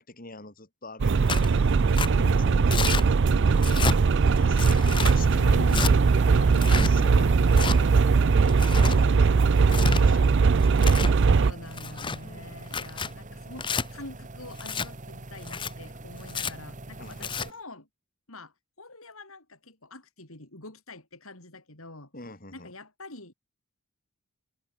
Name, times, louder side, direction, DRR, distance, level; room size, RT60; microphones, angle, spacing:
voice 1, 0.0-1.8 2.1-6.1 6.4-10.3 12.2-12.6 17.0-17.5 22.1-22.7, left 3 dB, 40° left, 4.3 m, -46 dB
sound 1, 1.0-11.5, right 4 dB, 55° right, 0.5 m, -20 dB
Tearing, 1.3-1.5 1.9-2.1 2.7-3.0 3.6-4.0 4.6-5.1 5.7-5.9 6.5-6.9 7.5-7.8 8.4-9.0 9.6-10.0 10.6-11.1 11.7-12.2 12.7-13.1 13.6-13.8 14.6-14.9 15.4-15.7 16.3-16.5 17.1-17.5, left 4 dB, 20° left, 0.7 m, -30 dB
voice 2, 2.1-2.6 5.5-5.9 6.5-7.0 10.8-17.9 18.3-22.1 22.5-23.3, left 2 dB, 70° left, 7.1 m, -45 dB
sound 2, 5.3-17.5, right 2 dB, 35° right, 1.5 m, -41 dB
head